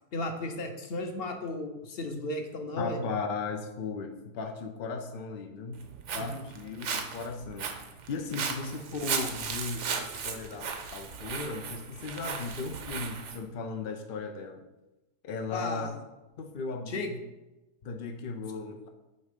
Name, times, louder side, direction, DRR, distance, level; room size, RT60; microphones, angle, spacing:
voice 1, 0.1-3.0 6.1-6.4 15.5-16.0 16.9-17.1, left 2 dB, 50° left, 5 dB, 0.8 m, -35 dB
voice 2, 2.8-5.8 6.1-14.6 15.2-15.9 16.4-17.2 17.8-18.8, left 4 dB, 70° left, 5 dB, 0.5 m, -37 dB
Walk footsteps, 5.7-13.4, right 6 dB, 60° right, 0.9 m, -36 dB
8.3 x 3.6 x 5.1 m, 1.0 s
omnidirectional pair, 1.7 m